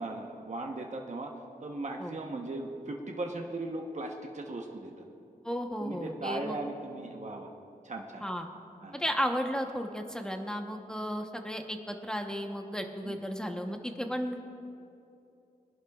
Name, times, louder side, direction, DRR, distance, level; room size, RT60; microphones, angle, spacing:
voice 1, 0.0-1.3 1.6-5.0 5.8-7.5 7.8-8.2 8.8-9.0 13.0-13.2, right 2 dB, 50° right, 1 dB, 1.0 m, -38 dB
voice 2, 5.4-6.6 8.2-8.5 8.9-14.4, equal, 5° left, 4 dB, 0.9 m, -34 dB
22.5 x 11.5 x 2.4 m, 2.6 s
wide cardioid pair, 90°, 16 cm